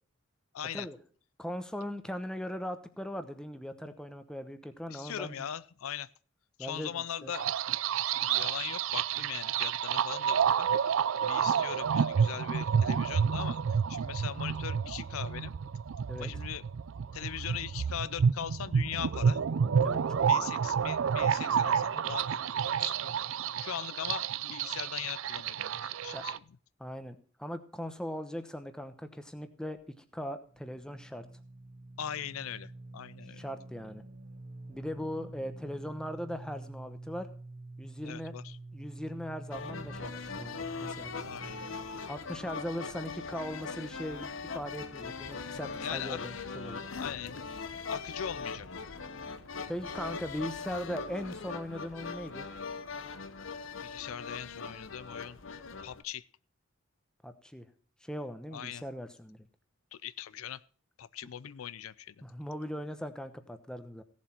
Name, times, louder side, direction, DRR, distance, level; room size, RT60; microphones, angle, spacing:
voice 1, 0.5-0.9 4.9-6.1 6.6-7.5 8.2-10.7 11.2-13.6 13.9-15.5 16.1-16.6 17.1-19.4 20.3-23.3 23.6-26.4 32.0-33.4 38.0-38.6 41.2-41.6 45.8-46.2 46.6-48.7 53.8-55.4 55.8-56.3 58.5-58.8 59.9-60.6 61.0-62.2, left 9 dB, 80° left, 18 dB, 0.5 m, -40 dB
voice 2, 1.4-5.5 6.6-7.3 16.1-16.3 19.8-20.5 26.1-26.2 26.8-29.8 30.1-31.2 33.3-34.0 34.7-37.3 37.8-38.3 38.7-41.1 42.1-46.8 49.7-52.5 57.2-57.7 58.0-59.5 62.2-64.0, equal, 5° left, 9 dB, 0.9 m, -39 dB
sound 1, 7.3-26.4, right 7 dB, 70° right, 0.4 m, -30 dB
sound 2, 29.5-29.8 30.5-45.4, right 2 dB, 45° right, 1.3 m, -48 dB
sound 3, 39.5-56.0, left 4 dB, 65° left, 0.9 m, -40 dB
16.5 x 7.5 x 4.4 m, 0.44 s
head